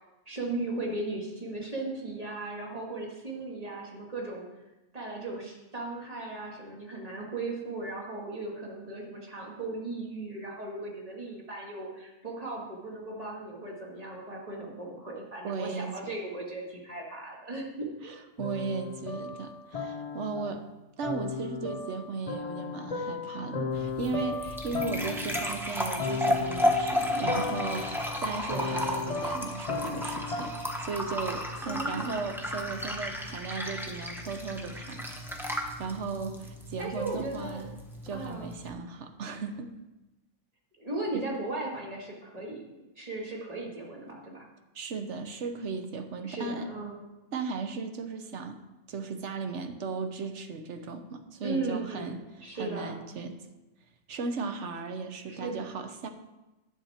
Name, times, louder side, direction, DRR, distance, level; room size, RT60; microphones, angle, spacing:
voice 1, 0.3-4.5 4.9-18.1 31.7-32.2 36.8-37.7 38.1-38.5 40.8-42.6 43.0-44.4 46.2-47.0 51.4-52.1 52.4-53.0 55.3-55.6, right 2 dB, 25° right, -2 dB, 2.1 m, -37 dB
voice 2, 15.4-15.9 18.0-20.6 21.0-35.1 35.5-37.7 38.0-39.7 41.1-41.2 44.7-46.7 47.3-48.6 48.9-52.2 52.6-53.4 54.1-56.1, right 4 dB, 60° right, 7 dB, 1.2 m, -36 dB
sound 1, 18.4-20.6 21.0-30.8, left 4 dB, 40° left, 0.6 m, -36 dB
sound 2, 23.7-38.7, left 1 dB, ahead, 0.9 m, -33 dB
11.0 x 7.2 x 4.3 m, 1.0 s
omnidirectional pair, 1.4 m